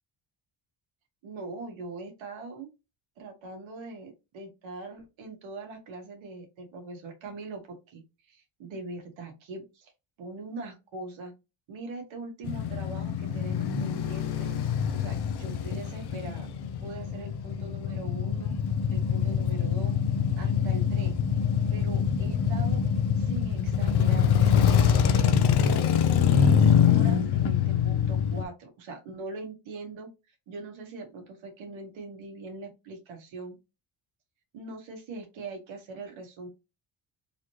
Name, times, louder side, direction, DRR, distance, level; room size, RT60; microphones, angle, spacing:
voice 1, 1.2-2.7 3.2-9.9 10.2-11.3 11.7-14.5 14.9-16.5 16.8-18.5 18.9-19.9 20.4-21.2 21.7-22.8 23.2-25.8 26.3-30.1 30.5-33.6 34.5-36.5, right 3 dB, 85° right, 2 dB, 1.6 m, -42 dB
Male speech man speaking / Motorcycle / Idling, 12.4-28.4, left 7 dB, 60° left, 0.7 m, -24 dB
4.0 x 3.0 x 3.1 m, 0.26 s
cardioid pair, 120°, 45 cm